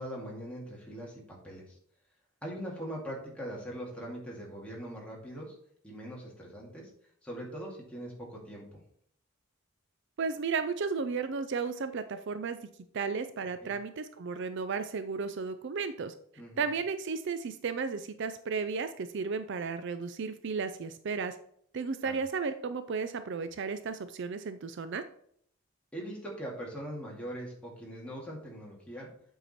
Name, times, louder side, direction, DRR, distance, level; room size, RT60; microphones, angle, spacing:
voice 1, 0.0-1.8 2.4-5.6 5.8-6.9 7.2-8.8 13.6-13.7 16.4-16.6 22.0-22.1 25.9-29.1, equal, 5° left, -3 dB, 2.2 m, -41 dB
voice 2, 10.2-12.6 12.9-16.1 16.6-21.4 21.7-25.0, right 5 dB, 55° right, 11 dB, 0.4 m, -34 dB
7.8 x 4.8 x 4.2 m, 0.66 s
head